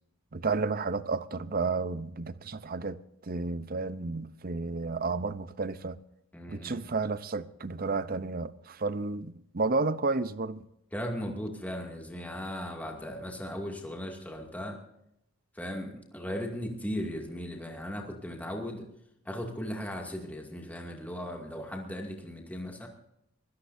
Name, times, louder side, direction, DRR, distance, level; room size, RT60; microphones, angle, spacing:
voice 1, 0.3-6.0 6.5-10.6, right 3 dB, 45° right, 0.7 m, -32 dB
voice 2, 6.3-6.9 10.9-14.8 15.5-18.9 19.2-22.9, equal, 10° left, 2.4 m, -37 dB
23.5 x 17.5 x 2.7 m
head